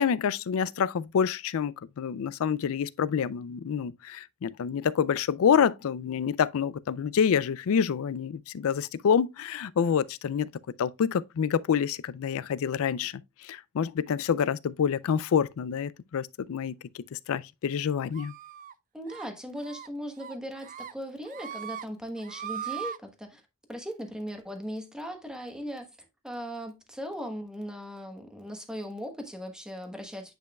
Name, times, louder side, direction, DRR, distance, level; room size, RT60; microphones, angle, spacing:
voice 1, 0.0-10.5 10.8-18.3, left 7 dB, 70° left, 0.4 m, -27 dB
sound 1, 18.1-18.7 19.1-19.3 19.6-19.9 20.2-20.9 21.3-21.9 22.2-23.0, right 9 dB, 35° right, 0.4 m, -39 dB
voice 2, 18.9-23.4 23.7-25.9 26.2-30.4, equal, 5° right, 1.2 m, -38 dB
8.9 x 5.3 x 2.3 m
head